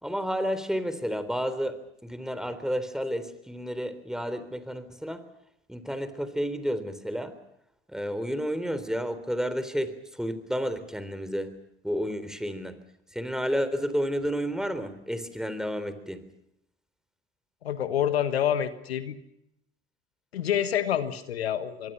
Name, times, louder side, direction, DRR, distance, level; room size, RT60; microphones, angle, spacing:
voice 1, 0.0-5.2 5.7-7.4 7.9-11.5 11.8-12.8 13.1-16.2, equal, ahead, 12 dB, 3.7 m, -31 dB
voice 2, 17.6-19.1 20.3-21.9, left 10 dB, 90° left, 12 dB, 1.5 m, -27 dB
26.0 x 23.0 x 5.7 m, 0.80 s
hypercardioid pair, 65°, 30 cm